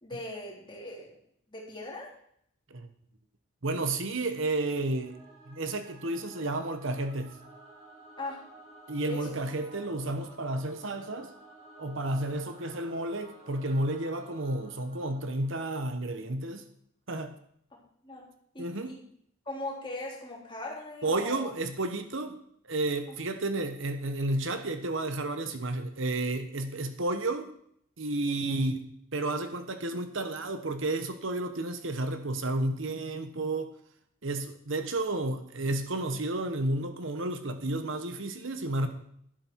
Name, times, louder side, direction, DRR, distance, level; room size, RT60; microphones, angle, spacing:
voice 1, 0.0-1.2 1.5-2.1 8.2-8.5 9.1-9.4 18.0-18.3 18.5-19.0 19.4-21.5 28.3-28.6, left 2 dB, 20° left, -2 dB, 3.3 m, -40 dB
voice 2, 3.6-5.1 5.5-7.3 8.9-11.3 11.8-16.6 17.1-17.3 18.6-18.9 21.0-22.4 22.7-27.5 28.0-33.7 34.2-38.9, right 2 dB, 60° right, 8 dB, 1.2 m, -31 dB
Singing / Musical instrument, 4.9-16.2, right 2 dB, 35° right, 5.6 m, -53 dB
12.0 x 11.5 x 4.6 m, 0.68 s
head